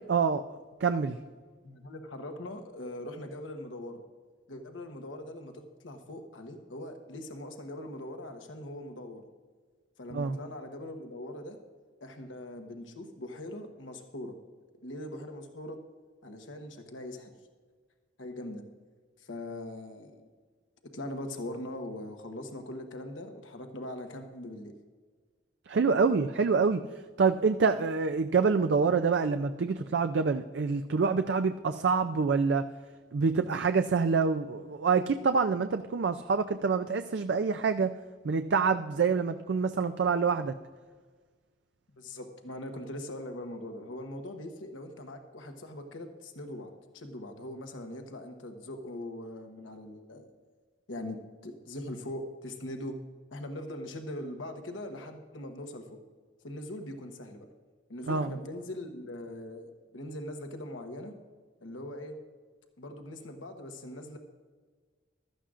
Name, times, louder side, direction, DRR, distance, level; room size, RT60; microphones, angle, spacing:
voice 1, 0.1-0.4 0.8-1.2 10.1-10.4 25.7-26.8 27.2-32.7 33.1-38.0 38.2-40.5 58.1-58.3, right 5 dB, 65° right, 8 dB, 0.4 m, -26 dB
voice 2, 1.6-4.0 4.5-9.2 10.0-11.6 12.0-14.3 14.8-15.8 16.2-17.3 18.2-18.6 19.2-20.2 20.9-24.7 41.9-50.3 50.9-53.0 53.3-56.0 56.4-57.5 57.9-61.1 61.6-62.1 62.8-64.2, left 1 dB, 90° left, 5 dB, 1.1 m, -41 dB
15.5 x 13.0 x 2.5 m, 1.5 s
head